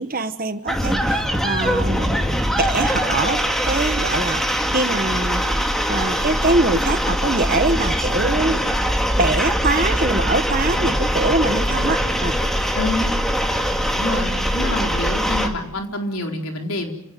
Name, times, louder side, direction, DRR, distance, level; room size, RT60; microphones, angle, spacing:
voice 1, 0.0-2.2 2.6-5.4 5.9-8.6 9.2-12.4, right 2 dB, 40° right, 10 dB, 1.4 m, -23 dB
sound 1, 0.7-15.5, equal, ahead, 2.4 m, -22 dB
voice 2, 12.7-13.1 13.9-16.9, left 2 dB, 75° left, 3 dB, 4.1 m, -27 dB
29.5 x 17.5 x 9.3 m, 0.81 s
head